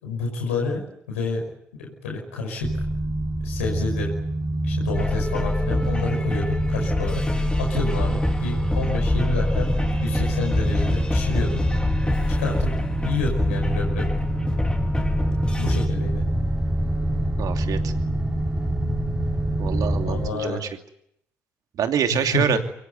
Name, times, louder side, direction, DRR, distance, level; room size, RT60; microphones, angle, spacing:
voice 1, 0.0-1.4 1.8-2.7 3.4-4.1 4.6-7.2 7.6-9.7 10.0-11.6 12.4-12.7 13.0-14.1 15.6-16.2 20.0-20.6 22.1-22.6, left 3 dB, 90° left, 0 dB, 5.5 m, -29 dB
sound 1, 2.6-20.3, right 1 dB, 10° right, 4.5 m, -26 dB
sound 2, 4.9-15.9, left 3 dB, 15° left, 4.5 m, -27 dB
voice 2, 17.4-17.9 19.6-20.7 21.8-22.6, right 8 dB, 60° right, 6 dB, 2.7 m, -25 dB
24.0 x 21.0 x 9.4 m, 0.73 s
hypercardioid pair, 50°, 7 cm